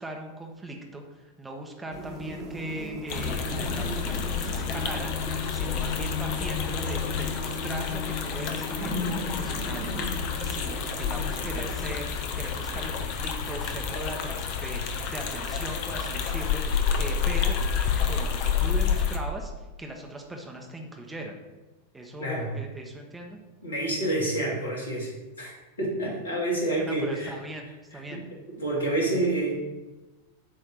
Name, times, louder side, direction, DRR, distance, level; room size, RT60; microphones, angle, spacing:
voice 1, 0.0-12.1 12.3-14.3 14.6-17.6 18.0-21.4 21.9-23.4 26.8-28.2, right 1 dB, 10° right, 1 dB, 1.1 m, -39 dB
sound 1, 1.9-11.9, equal, 35° right, 1.4 m, -37 dB
sound 2, 3.1-19.2, left 7 dB, 45° left, 0.9 m, -29 dB
voice 2, 22.2-22.5 23.6-25.1 25.4-25.5 25.8-27.3 28.1-28.2 28.6-29.5, right 2 dB, 65° left, -2 dB, 2.4 m, -28 dB
8.8 x 3.3 x 6.6 m, 1.1 s
figure-of-eight pair, 90°, 0 cm